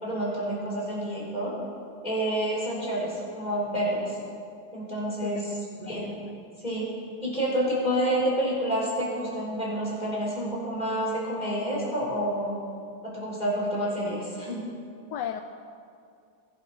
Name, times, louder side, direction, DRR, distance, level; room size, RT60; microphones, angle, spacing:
voice 1, 0.0-1.5 2.0-4.2 4.7-5.5 5.8-6.2 6.6-6.9 7.2-12.6 13.0-14.7, right 1 dB, 20° left, -5 dB, 4.7 m, -29 dB
voice 2, 5.2-5.9 15.1-15.4, left 9 dB, 75° left, 7 dB, 1.0 m, -35 dB
21.5 x 11.5 x 4.3 m, 2.4 s
omnidirectional pair, 2.3 m